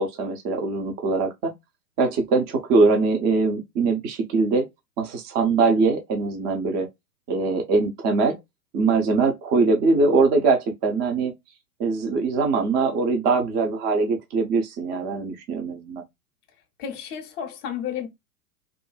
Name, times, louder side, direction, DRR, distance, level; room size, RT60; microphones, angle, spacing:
voice 1, 0.0-1.5 2.0-4.7 5.0-6.9 7.3-8.3 8.7-11.3 11.8-16.0, right 4 dB, 20° right, 0.5 m, -22 dB
voice 2, 16.8-18.1, left 8 dB, 25° left, 0.6 m, -32 dB
2.6 x 2.5 x 2.2 m
hypercardioid pair, 115°, 44 cm